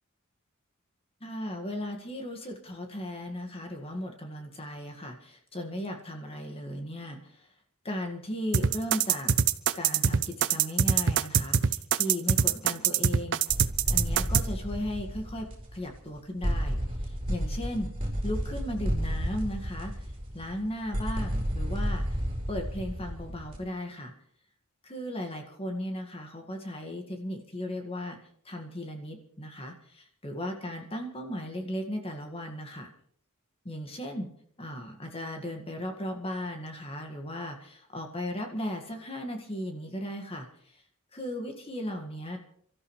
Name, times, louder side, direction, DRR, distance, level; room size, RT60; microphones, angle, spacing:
voice 1, 1.2-7.5 7.8-9.3 9.7-13.4 13.9-16.8 17.0-17.9 18.2-20.1 20.3-22.2 22.5-24.1 24.8-28.2 28.5-32.9 33.6-34.3 34.6-40.8 41.1-42.4, left 1 dB, 25° left, 3 dB, 1.9 m, -36 dB
sound 1, 8.5-14.4, right 8 dB, 55° right, 0.6 m, -23 dB
sound 2, 13.5-16.1 16.4-23.6, equal, 25° right, 4.4 m, -32 dB
28.5 x 13.5 x 3.3 m, 0.63 s
head